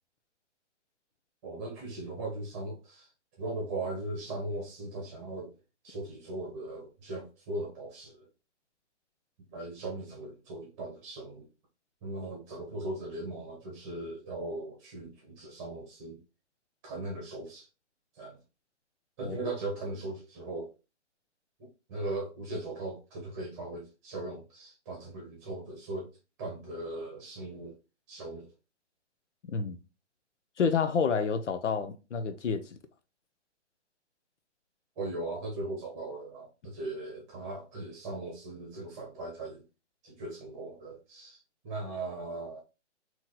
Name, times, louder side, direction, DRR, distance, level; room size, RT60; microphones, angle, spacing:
voice 1, 1.4-3.1 3.4-5.5 5.8-8.2 9.5-11.5 12.0-16.2 16.8-17.7 18.1-18.4 19.2-20.7 21.6-26.1 26.4-27.7 28.1-28.5 35.0-39.6 40.0-41.4 41.6-42.6, right 2 dB, 15° right, 1.1 m, -38 dB
voice 2, 30.6-32.8, left 6 dB, 80° left, 0.8 m, -29 dB
4.0 x 3.0 x 3.9 m
hypercardioid pair, 170°, 36 cm